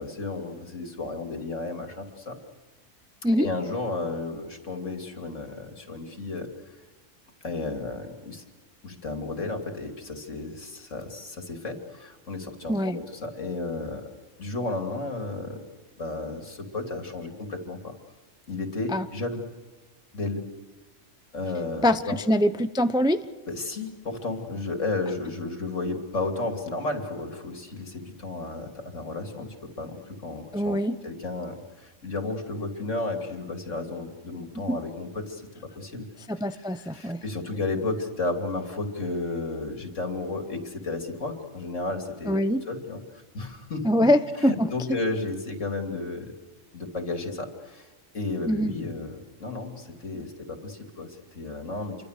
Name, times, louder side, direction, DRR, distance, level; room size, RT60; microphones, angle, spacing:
voice 1, 0.0-2.4 3.4-6.5 7.4-8.4 8.8-14.1 14.4-15.6 16.0-17.9 18.5-19.4 20.1-20.4 21.3-22.2 23.5-30.8 31.0-35.5 35.7-36.1 36.5-43.9 44.3-46.3 46.7-47.9 48.1-52.0, left 3 dB, 70° left, 4 dB, 3.3 m, -33 dB
voice 2, 21.8-23.2 30.5-30.9 34.7-34.8 36.3-37.2 42.3-42.6 43.8-45.0 48.5-48.7, equal, 5° right, 10 dB, 0.6 m, -24 dB
28.0 x 24.0 x 6.7 m, 1.3 s
omnidirectional pair, 1.3 m